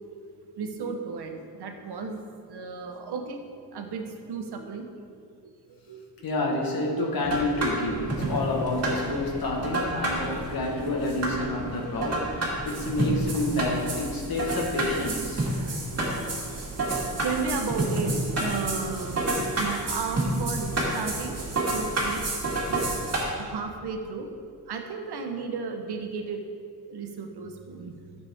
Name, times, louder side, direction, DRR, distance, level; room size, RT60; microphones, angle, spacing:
voice 1, 0.5-2.2 2.5-5.1 5.4-6.0 15.5-22.2 22.7-22.9 23.4-24.3 24.7-26.4 26.9-28.0, right 4 dB, 90° right, 5 dB, 1.0 m, -34 dB
voice 2, 6.2-15.5, left 2 dB, 65° left, 0 dB, 1.5 m, -29 dB
sound 1, 7.2-23.2, right 1 dB, 40° right, 2.1 m, -29 dB
12.0 x 6.7 x 3.6 m, 2.2 s
wide cardioid pair, 160°, 38 cm